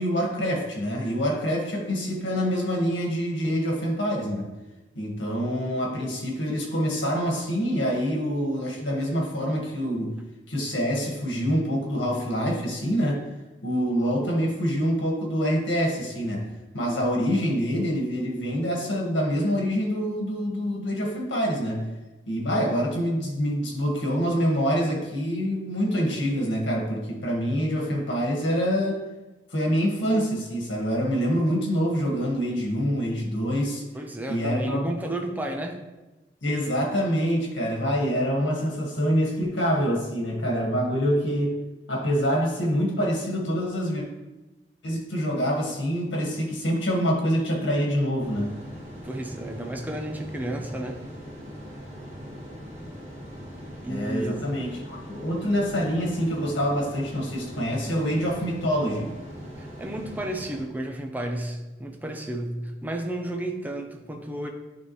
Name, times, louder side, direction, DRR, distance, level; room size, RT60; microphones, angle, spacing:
voice 1, 0.0-4.5 4.9-10.2 10.5-13.2 13.6-21.9 22.3-29.0 29.5-33.8 34.3-34.9 36.4-41.6 41.9-44.0 44.8-48.5 53.9-59.1, equal, 85° left, -1 dB, 1.6 m, -26 dB
voice 2, 33.9-35.8 49.0-51.0 53.8-54.4 59.6-64.5, right 1 dB, 10° right, 3 dB, 0.6 m, -32 dB
sound 1, 48.2-60.6, equal, 35° right, 1.5 m, -41 dB
9.8 x 3.5 x 3.1 m, 1.1 s
head